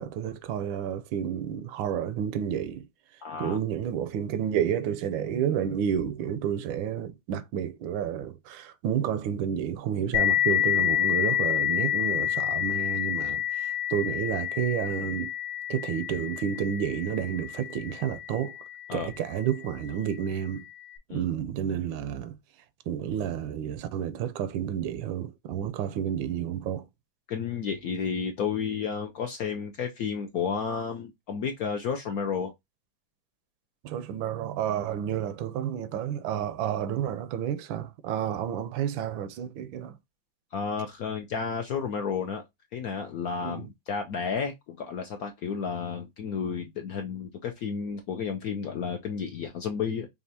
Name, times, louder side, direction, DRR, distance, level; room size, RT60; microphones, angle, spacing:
voice 1, 0.0-2.9 3.4-15.3 15.7-18.6 18.9-20.7 21.1-22.4 22.9-26.9 33.8-40.0 43.4-43.7, right 9 dB, 80° right, 1.3 m, -30 dB
voice 2, 3.2-3.6 18.9-19.1 21.1-21.2 27.3-32.5 40.5-42.4 42.7-50.1, left 6 dB, 70° left, 0.9 m, -32 dB
sound 1, 10.1-19.4, left 11 dB, 85° left, 1.5 m, -29 dB
5.5 x 2.4 x 2.7 m
omnidirectional pair, 2.1 m